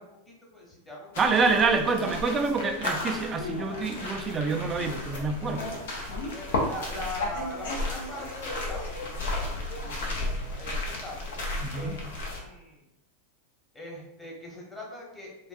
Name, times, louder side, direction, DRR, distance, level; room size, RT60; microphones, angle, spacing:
voice 1, 0.0-1.7 1.9-2.5 6.3-11.2 11.7-12.9 13.7-15.5, left 1 dB, 15° left, -2 dB, 1.0 m, -42 dB
sound 1, 1.1-12.4, left 2 dB, 70° left, 0.8 m, -33 dB
voice 2, 1.2-5.7 11.6-12.0, right 4 dB, 25° right, 5 dB, 0.4 m, -26 dB
3.5 x 2.3 x 2.5 m, 0.86 s
hypercardioid pair, 105°, 0 cm